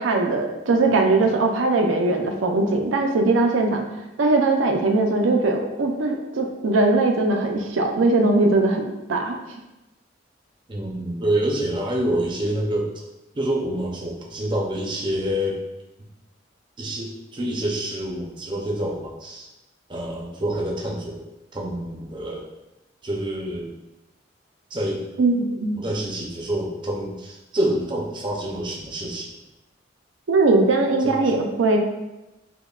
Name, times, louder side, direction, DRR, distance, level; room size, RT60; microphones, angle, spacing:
voice 1, 0.0-3.8 4.2-9.4 25.2-25.7 30.3-31.8, right 2 dB, 80° right, 2 dB, 0.5 m, -20 dB
voice 2, 10.7-13.0 13.3-15.6 16.8-19.5 19.9-21.2 21.5-22.5 23.0-23.7 24.7-25.0 25.7-29.3 31.0-31.3, right 1 dB, 25° right, -2 dB, 0.5 m, -27 dB
5.3 x 2.2 x 2.3 m, 1.0 s
head